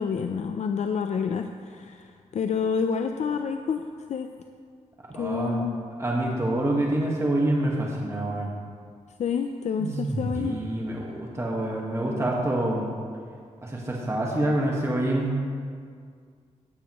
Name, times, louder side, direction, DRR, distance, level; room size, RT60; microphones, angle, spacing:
voice 1, 0.0-3.8 4.1-4.3 5.1-5.8 9.2-10.5, left 6 dB, 60° left, 6 dB, 0.5 m, -28 dB
voice 2, 5.1-5.6 6.0-8.5 10.4-13.0 13.6-15.4, right 1 dB, 20° right, -3 dB, 1.6 m, -26 dB
sound 1, 9.8-10.7, right 2 dB, 45° right, 2.4 m, -31 dB
17.0 x 8.4 x 3.1 m, 2.1 s
cardioid pair, 75°, 13 cm